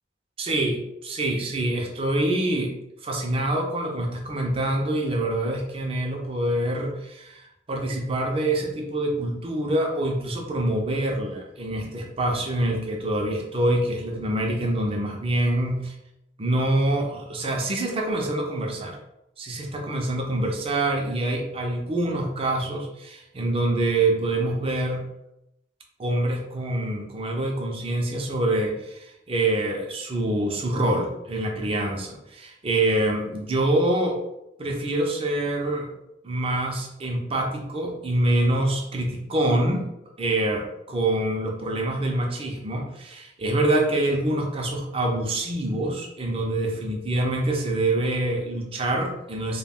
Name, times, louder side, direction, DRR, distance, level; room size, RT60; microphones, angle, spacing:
voice 1, 0.4-2.7 3.0-7.4 7.7-16.0 16.4-19.0 19.4-25.0 26.0-34.2 34.6-35.9 36.2-39.8 40.2-49.6, right 1 dB, 30° right, 1 dB, 0.5 m, -25 dB
2.2 x 2.2 x 3.4 m, 0.87 s
head